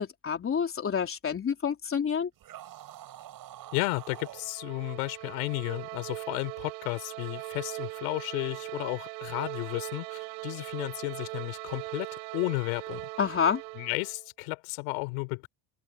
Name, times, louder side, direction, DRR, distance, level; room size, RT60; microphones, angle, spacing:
voice 1, 0.0-2.3 13.2-13.6, left 7 dB, 30° left, 3.7 m, -28 dB
sound 1, 2.4-4.5, right 12 dB, 55° right, 7.3 m, -46 dB
voice 2, 3.7-12.1 12.3-13.1 13.7-15.4, left 29 dB, 85° left, 4.8 m, -33 dB
sound 2, 3.7-14.3, right 29 dB, 90° right, 6.6 m, -40 dB
supercardioid pair, 105°, 41 cm